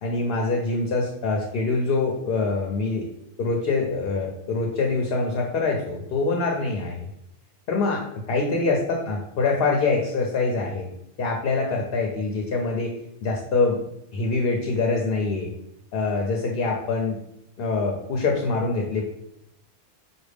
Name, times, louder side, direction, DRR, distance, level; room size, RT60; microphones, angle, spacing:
voice 1, 0.0-3.1 3.4-7.1 7.7-10.9 11.2-12.9 13.2-13.8 14.1-15.5 15.9-17.2 17.6-19.1, left 3 dB, 60° left, 1 dB, 0.7 m, -24 dB
5.0 x 2.2 x 3.3 m, 0.80 s
omnidirectional pair, 1.2 m